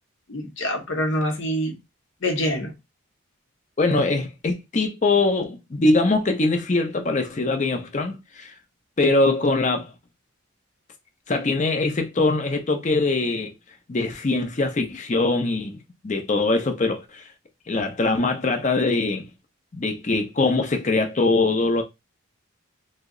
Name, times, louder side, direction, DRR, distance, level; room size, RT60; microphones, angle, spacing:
voice 1, 0.3-1.8 2.2-2.7, equal, 60° left, 0.8 m, -25 dB
voice 2, 3.8-8.5 9.0-9.9 11.3-13.5 13.9-15.8 16.0-17.2 17.7-19.3 19.7-21.8, left 3 dB, 35° left, 0.5 m, -22 dB
2.8 x 2.1 x 3.6 m
head